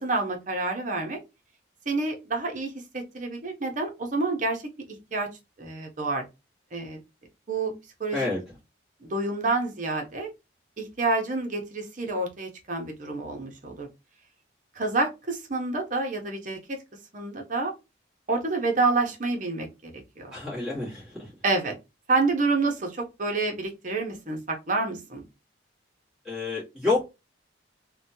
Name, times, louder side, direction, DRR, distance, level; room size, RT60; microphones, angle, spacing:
voice 1, 0.0-1.2 1.9-4.6 4.9-5.3 5.6-6.2 6.7-7.0 7.5-8.3 9.0-10.3 10.8-13.9 14.7-16.6 17.1-17.7 18.3-20.3 21.4-21.8 22.1-25.2, right 3 dB, 40° right, 0.7 m, -28 dB
voice 2, 20.3-21.3 26.2-27.1, left 3 dB, ahead, 1.3 m, -28 dB
3.0 x 2.2 x 2.6 m
head